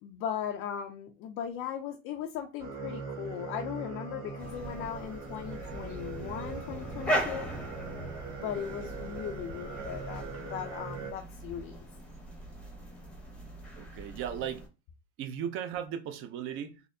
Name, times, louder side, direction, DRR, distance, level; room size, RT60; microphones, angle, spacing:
voice 1, 0.0-7.5 8.4-11.8, left 9 dB, 40° left, 0.4 m, -38 dB
sound 1, 2.6-11.1, right 4 dB, 55° right, 1.9 m, -41 dB
sound 2, 4.4-14.7, equal, 5° left, 0.7 m, -39 dB
voice 2, 13.8-14.6 15.2-16.8, right 9 dB, 40° right, 0.5 m, -37 dB
4.0 x 2.8 x 2.6 m
cardioid pair, 165°, 33 cm